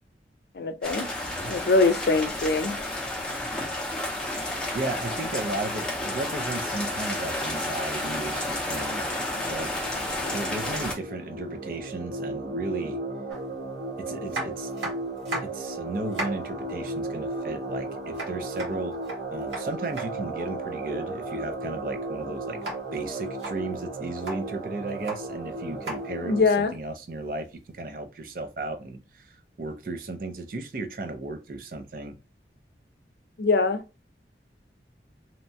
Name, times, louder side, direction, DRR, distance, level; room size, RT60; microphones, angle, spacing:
voice 1, 0.6-1.1 1.5-2.8 26.2-26.7 33.4-33.8, left 3 dB, 65° left, 0.4 m, -23 dB
sound 1, 0.8-10.9, left 1 dB, 5° left, 0.6 m, -31 dB
voice 2, 1.2-1.6 4.7-9.0 9.4-9.7 10.3-13.0 14.0-14.7 15.4-19.0 19.3-22.6 22.9-32.1, right 2 dB, 50° right, 0.5 m, -35 dB
sound 2, 7.9-26.4, right 2 dB, 70° right, 1.5 m, -35 dB
sound 3, 13.3-13.4 14.3-15.7 16.0-16.5 18.1-20.1 22.6-22.8 23.3-23.6 24.1-24.4 24.9-25.2 25.8-26.0 27.2-27.3, right 1 dB, 90° right, 1.1 m, -34 dB
2.8 x 2.2 x 2.6 m
head